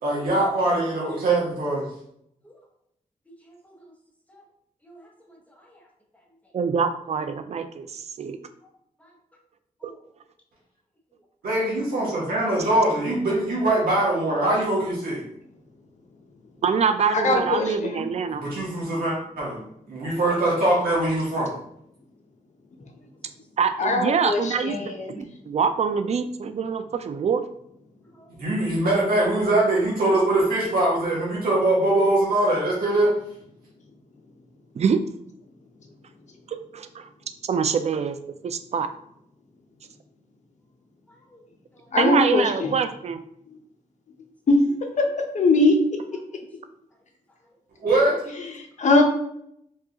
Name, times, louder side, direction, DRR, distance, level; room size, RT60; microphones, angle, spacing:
voice 1, 0.0-1.8 11.4-15.2 18.3-21.5 28.4-33.1 47.8-48.3, right 1 dB, 90° right, -5 dB, 1.1 m, -22 dB
voice 2, 3.4-3.9 4.3-4.4 4.8-5.8 9.0-9.1 9.8-10.0 28.1-28.3 41.1-41.4 41.7-41.8, right 1 dB, 10° left, -1 dB, 0.9 m, -53 dB
voice 3, 6.5-8.4 9.8-9.9 16.6-18.4 23.6-27.4 34.8-35.0 36.5-37.1 37.4-38.2 38.4-38.9 42.0-43.2, right 6 dB, 50° right, 9 dB, 0.4 m, -25 dB
voice 4, 17.2-17.7 23.8-25.2 41.9-42.7 44.5-44.6 45.3-45.8 48.8-49.0, left 2 dB, 55° left, 3 dB, 0.7 m, -20 dB
4.6 x 2.4 x 2.8 m, 0.73 s
cardioid pair, 90°, 15 cm